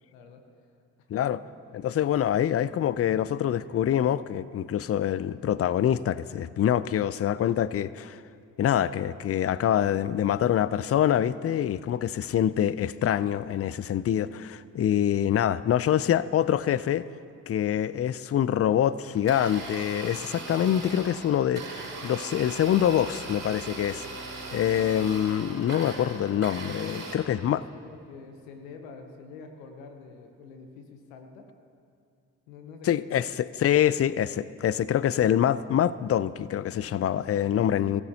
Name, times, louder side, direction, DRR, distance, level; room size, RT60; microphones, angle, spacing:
voice 1, 0.1-0.4 1.1-1.4 26.9-31.5 32.5-33.3, left 4 dB, 90° left, 0.9 m, -46 dB
voice 2, 1.7-8.2 8.6-17.1 17.5-24.1 24.5-27.6 32.8-38.0, left 10 dB, 40° left, 0.5 m, -25 dB
Domestic sounds home sounds, 19.1-27.1, right 3 dB, 55° right, 4.4 m, -39 dB
24.0 x 15.5 x 2.9 m
hypercardioid pair, 40°, 39 cm